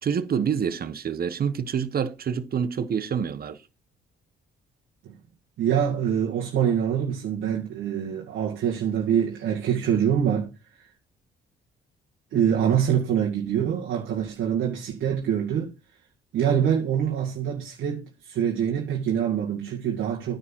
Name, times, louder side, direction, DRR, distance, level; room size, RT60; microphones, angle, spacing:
voice 1, 0.0-3.6, right 7 dB, 50° right, 1.2 m, -27 dB
voice 2, 5.6-10.5 10.8-10.9 12.3-15.7 16.3-20.4, right 8 dB, 75° right, 2.2 m, -25 dB
9.9 x 5.2 x 6.2 m
cardioid pair, 90°, 20 cm